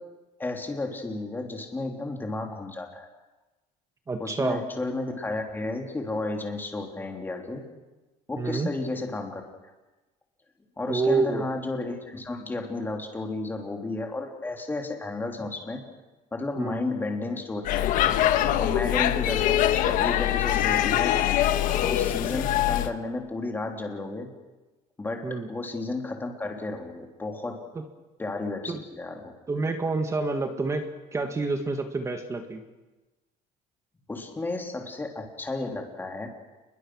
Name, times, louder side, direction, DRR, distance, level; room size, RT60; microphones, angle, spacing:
voice 1, 0.4-3.1 4.2-7.7 8.3-9.4 10.8-15.8 16.3-17.9 18.6-21.2 21.8-24.3 25.0-27.6 28.2-29.3 34.1-36.3, left 2 dB, 10° left, 3 dB, 3.5 m, -32 dB
voice 2, 4.1-4.6 8.4-8.7 10.9-11.5 16.6-16.8 25.2-25.5 27.8-27.9 28.7-28.8 29.5-32.6, right 3 dB, 20° right, 6 dB, 1.9 m, -28 dB
Speech / Shout / Subway metro underground, 17.6-22.9, left 12 dB, 60° left, 1.4 m, -23 dB
29.0 x 22.0 x 6.4 m, 1.1 s
cardioid pair, 150°, 16 cm